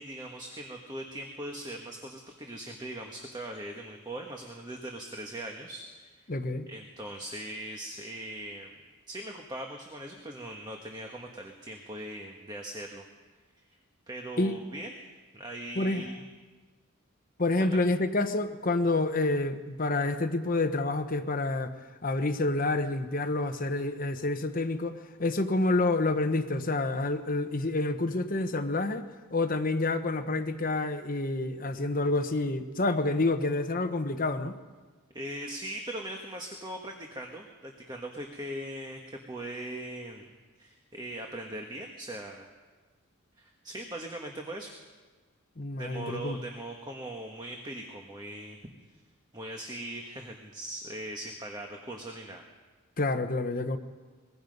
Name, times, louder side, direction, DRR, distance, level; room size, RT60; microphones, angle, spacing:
voice 1, 0.0-6.2 6.7-8.7 9.1-13.0 14.1-14.9 15.3-16.2 17.7-17.8 35.1-40.3 40.6-42.5 43.4-44.7 45.8-48.6 49.3-52.4, right 1 dB, 20° right, 2 dB, 1.4 m, -40 dB
voice 2, 6.3-6.7 14.4-14.6 15.8-16.1 17.4-21.7 22.0-34.5 45.6-46.4 53.0-53.8, left 2 dB, 40° left, 8 dB, 1.0 m, -28 dB
23.5 x 21.5 x 5.4 m, 1.4 s
head